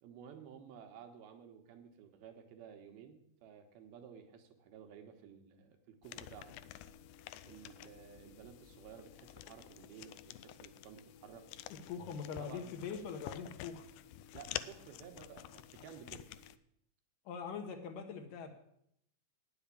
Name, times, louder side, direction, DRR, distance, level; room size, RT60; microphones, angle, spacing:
voice 1, 0.0-6.6 7.4-11.4 12.3-12.7 14.3-16.3, right 8 dB, 80° right, 5 dB, 3.0 m, -54 dB
sound 1, 6.0-16.6, left 13 dB, 85° left, 1.9 m, -49 dB
voice 2, 11.9-13.9 17.3-18.5, left 6 dB, 70° left, 5 dB, 2.6 m, -42 dB
10.0 x 7.1 x 8.5 m, 0.73 s
omnidirectional pair, 4.4 m